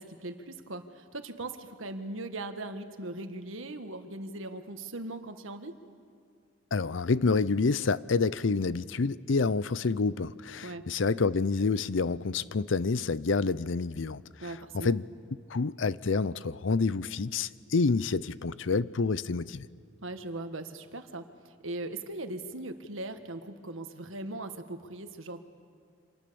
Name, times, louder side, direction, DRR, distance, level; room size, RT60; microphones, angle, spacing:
voice 1, 0.0-5.8 10.6-10.8 14.4-15.0 20.0-25.4, right 2 dB, 85° right, 1.6 m, -39 dB
voice 2, 6.7-14.2 14.7-15.0 15.5-19.7, left 4 dB, 75° left, 0.6 m, -28 dB
29.0 x 26.0 x 7.0 m
head